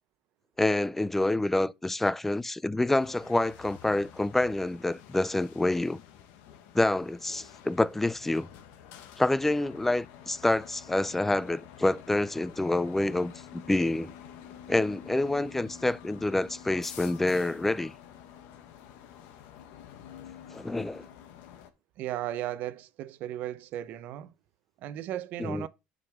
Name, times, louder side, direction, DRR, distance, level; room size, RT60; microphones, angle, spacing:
voice 1, 0.6-6.0 6.7-8.5 9.2-14.1 14.7-17.9 20.5-21.1 25.4-25.7, left 2 dB, 5° left, 0.3 m, -27 dB
sound 1, 3.0-21.7, left 9 dB, 70° left, 1.2 m, -49 dB
voice 2, 22.0-24.3 24.8-25.7, right 12 dB, 50° right, 0.7 m, -36 dB
9.7 x 5.3 x 3.5 m
cardioid pair, 150°, 4 cm